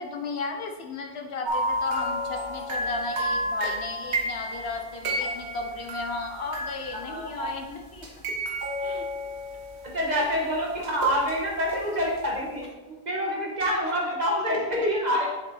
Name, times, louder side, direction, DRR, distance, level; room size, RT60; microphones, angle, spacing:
voice 1, 0.0-8.1 8.8-9.1 10.1-10.4 13.6-13.8 14.0-14.1, left 3 dB, 65° left, 3 dB, 1.2 m, -35 dB
sound 1, 1.5-7.3 8.0-10.1 10.8-11.8 12.2-12.3, equal, 75° right, 1.7 m, -31 dB
voice 2, 7.1-7.5 9.9-15.3, equal, 40° right, -2 dB, 2.0 m, -27 dB
7.2 x 7.1 x 4.4 m, 1.1 s
omnidirectional pair, 1.1 m